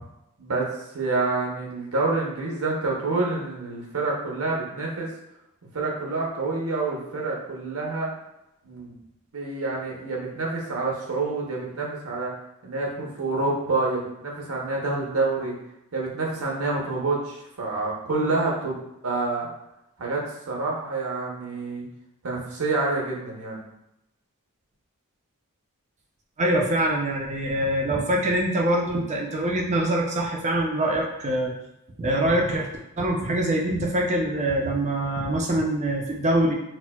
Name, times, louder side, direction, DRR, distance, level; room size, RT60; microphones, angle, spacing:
voice 1, 0.9-5.1 5.7-8.1 8.7-9.0 9.3-12.3 12.6-15.5 15.9-19.5 20.0-21.9 22.2-23.6, right 3 dB, 70° right, -2 dB, 0.8 m, -27 dB
voice 2, 26.4-31.5 32.0-32.7 33.0-36.5, right 1 dB, 30° right, -1 dB, 0.5 m, -24 dB
4.3 x 2.1 x 2.2 m, 0.86 s
head